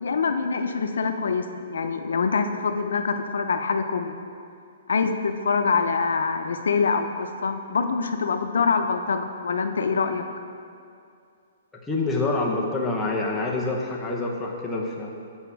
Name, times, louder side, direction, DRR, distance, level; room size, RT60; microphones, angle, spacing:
voice 1, 0.0-4.2 4.9-10.2, left 5 dB, 90° left, 7 dB, 0.6 m, -25 dB
voice 2, 11.9-15.2, left 2 dB, 5° left, -3 dB, 0.7 m, -26 dB
8.1 x 4.2 x 6.8 m, 2.4 s
hypercardioid pair, 170°, 0 cm